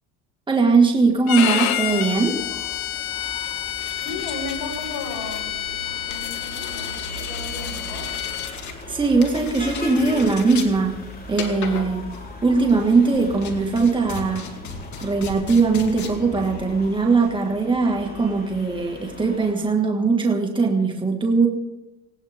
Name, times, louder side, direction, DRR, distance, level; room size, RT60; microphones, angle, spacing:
voice 1, 0.5-2.4 8.9-10.9 11.3-12.1 12.4-14.5 15.0-21.5, right 4 dB, 10° right, 1 dB, 2.0 m, -20 dB
Bowed string instrument, 1.3-8.5, left 12 dB, 85° left, 1.8 m, -29 dB
sound 1, 1.3-17.3, left 5 dB, 45° left, 3.0 m, -38 dB
sound 2, 1.9-19.5, left 1 dB, 20° left, 4.1 m, -39 dB
voice 2, 4.0-5.5 6.1-8.2, left 4 dB, 65° left, 1 dB, 5.1 m, -34 dB
19.5 x 18.0 x 3.7 m, 1.0 s
supercardioid pair, 105°, 41 cm